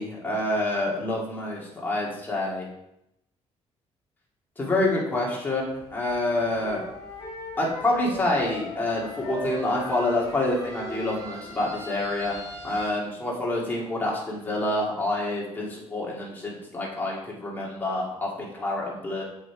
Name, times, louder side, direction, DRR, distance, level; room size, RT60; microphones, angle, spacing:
voice 1, 0.0-2.7 4.6-6.8 7.6-19.2, left 2 dB, 15° left, -4 dB, 2.6 m, -27 dB
sound 1, 5.6-12.9, equal, 30° right, 2.1 m, -45 dB
Wind instrument woodwind instrument, 6.2-11.5, equal, 70° left, 2.3 m, -38 dB
8.0 x 6.3 x 4.7 m, 0.81 s
cardioid pair, 160°, 11 cm